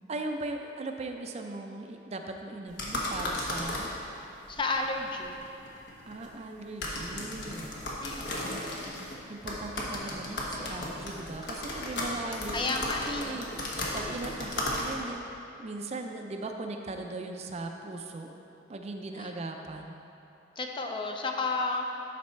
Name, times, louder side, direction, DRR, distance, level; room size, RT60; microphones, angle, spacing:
voice 1, 0.1-3.9 5.7-5.8 6.1-8.2 9.3-15.2 15.6-18.3 18.7-20.0, right 2 dB, 35° right, 4 dB, 0.4 m, -38 dB
sound 1, 2.7-15.2, left 1 dB, 65° left, 1.2 m, -36 dB
voice 2, 4.5-5.4 8.0-8.4 12.5-13.4 19.2-19.3 20.6-21.9, left 3 dB, 25° left, 3 dB, 0.5 m, -32 dB
11.5 x 4.1 x 4.3 m, 2.9 s
head